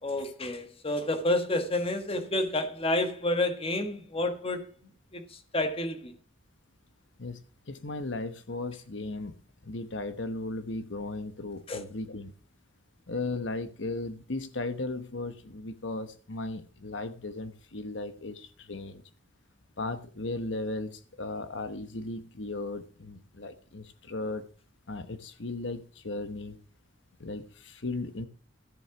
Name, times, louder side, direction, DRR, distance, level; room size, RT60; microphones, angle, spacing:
voice 1, 0.0-4.7 5.1-6.1 11.7-11.8, left 1 dB, 30° left, 1.5 m, -29 dB
voice 2, 7.7-9.4 9.6-12.3 13.1-19.0 19.8-24.5 24.9-26.6 27.2-28.3, left 2 dB, 70° left, 1.1 m, -36 dB
14.0 x 7.8 x 6.0 m
head